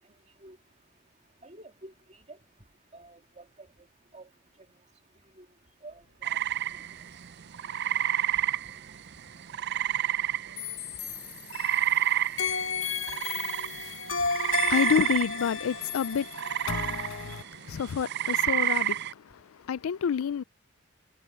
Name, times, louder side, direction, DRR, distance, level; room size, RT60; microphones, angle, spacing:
voice 1, 1.4-1.9 2.3-2.4 2.9-3.4 4.1-4.3 5.4-5.5 5.8-6.4, right 2 dB, 35° right, 2.4 m, -48 dB
sound 1, 5.9-16.9, right 2 dB, 70° right, 5.5 m, -60 dB
sound 2, 6.2-10.9 11.2-19.1, right 12 dB, 55° right, 0.5 m, -30 dB
sound 3, 10.6-12.0 12.4-17.4, left 6 dB, 65° left, 1.2 m, -33 dB
voice 2, 14.6-20.4, left 7 dB, 85° left, 0.4 m, -30 dB
head